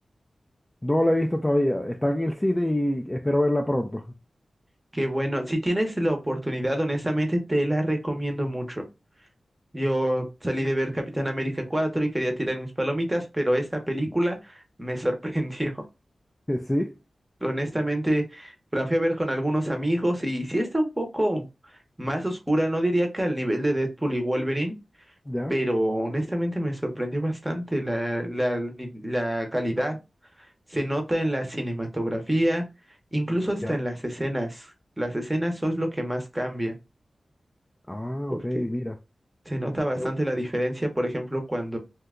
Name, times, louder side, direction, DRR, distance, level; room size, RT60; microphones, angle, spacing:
voice 1, 0.8-4.0 16.5-16.9 25.3-25.5 33.6-33.8 37.9-39.0 40.0-40.1, left 1 dB, 15° left, 0.3 m, -25 dB
voice 2, 4.9-8.8 9.7-15.8 17.4-21.5 22.0-24.8 25.5-30.0 30.7-32.6 33.1-36.8 38.3-38.7 39.5-41.8, right 1 dB, 10° right, 0.8 m, -27 dB
2.8 x 2.2 x 3.5 m
wide cardioid pair, 110°, 0 cm